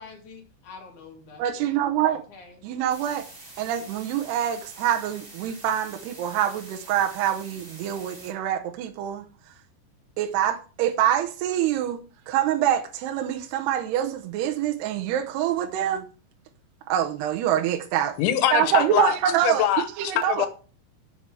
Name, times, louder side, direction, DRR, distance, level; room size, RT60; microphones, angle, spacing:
voice 1, 0.0-1.8 2.1-2.6 18.6-19.1, left 4 dB, 50° left, 3.0 m, -44 dB
voice 2, 1.4-2.2 2.6-3.2 3.6-9.3 10.2-12.0 12.3-16.1 16.9-18.2 18.5-20.5, right 10 dB, 75° right, 2.6 m, -25 dB
sound 1, 2.9-8.3, right 2 dB, 25° right, 3.9 m, -46 dB
voice 3, 18.2-19.1 19.4-19.8 20.3-20.5, left 11 dB, 85° left, 3.4 m, -22 dB
9.7 x 7.6 x 4.8 m
omnidirectional pair, 5.4 m